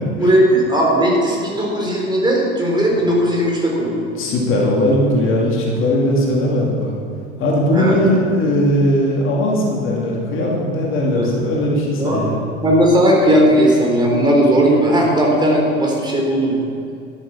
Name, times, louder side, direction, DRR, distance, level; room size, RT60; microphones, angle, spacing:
voice 1, 0.2-4.0 7.7-8.0 11.1-11.3 12.0-12.2 12.6-16.5, right 1 dB, 15° right, -2 dB, 3.9 m, -16 dB
voice 2, 4.1-6.9 7.4-12.5, left 1 dB, 40° left, -3 dB, 2.8 m, -18 dB
13.0 x 11.5 x 5.9 m, 2.4 s
figure-of-eight pair, 75°, 33 cm